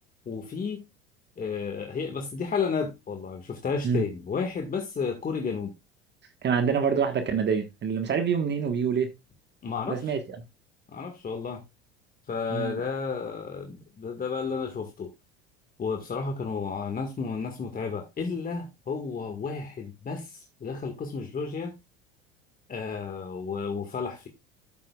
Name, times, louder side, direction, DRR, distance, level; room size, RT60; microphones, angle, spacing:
voice 1, 0.3-0.8 1.4-5.7 9.6-10.1 10.9-11.6 12.3-15.1 15.8-21.7 22.7-24.3, left 5 dB, 30° left, 1.8 m, -32 dB
voice 2, 6.4-9.1 9.9-10.4 12.5-12.8, right 6 dB, 35° right, 1.4 m, -26 dB
12.5 x 7.6 x 2.4 m
hypercardioid pair, 75°, 30 cm